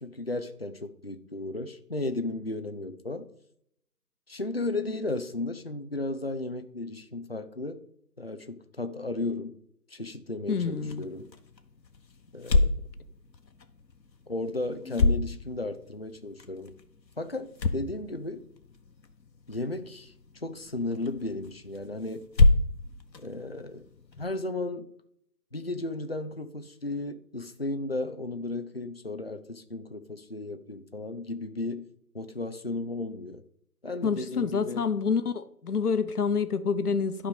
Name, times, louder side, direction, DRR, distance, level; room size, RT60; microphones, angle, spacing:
voice 1, 0.0-3.3 4.3-7.8 8.2-9.6 9.9-11.3 12.3-12.7 14.3-16.8 17.2-18.5 19.5-22.3 23.2-23.8 24.2-24.9 25.5-31.9 32.1-33.4 33.8-34.9, left 2 dB, 40° left, 0.5 m, -34 dB
voice 2, 10.5-11.1 14.8-15.0 34.0-37.3, left 5 dB, 65° left, 1.0 m, -28 dB
sound 1, 10.7-24.3, left 3 dB, 90° left, 1.3 m, -30 dB
11.5 x 5.0 x 5.2 m
figure-of-eight pair, 170°, 49 cm